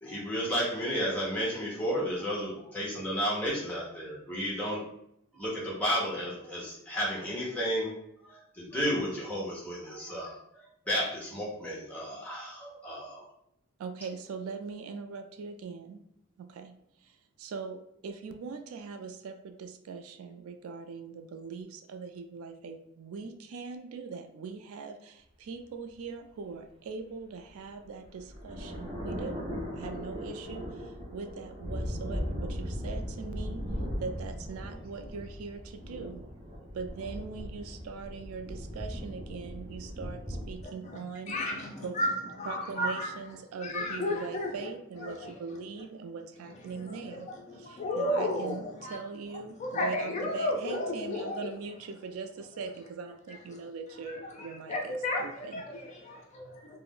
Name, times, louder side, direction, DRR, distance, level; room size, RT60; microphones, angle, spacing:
voice 1, 0.0-4.9 5.3-7.9 8.2-13.2, equal, 5° left, -5 dB, 0.8 m, -32 dB
voice 2, 13.8-16.0 16.4-29.5 29.7-33.7 34.0-36.2 36.7-41.5 41.8-42.0 42.5-55.6, right 5 dB, 75° right, 7 dB, 0.3 m, -41 dB
sound 1, 27.5-40.6, equal, 25° right, 0.6 m, -38 dB
voice 3, 41.3-42.1 42.4-43.1 43.6-44.7 45.0-45.3 46.9-49.0 49.6-51.5 53.5-53.6 54.1-56.8, left 1 dB, 35° left, 0 dB, 0.4 m, -33 dB
2.4 x 2.0 x 3.6 m, 0.77 s
head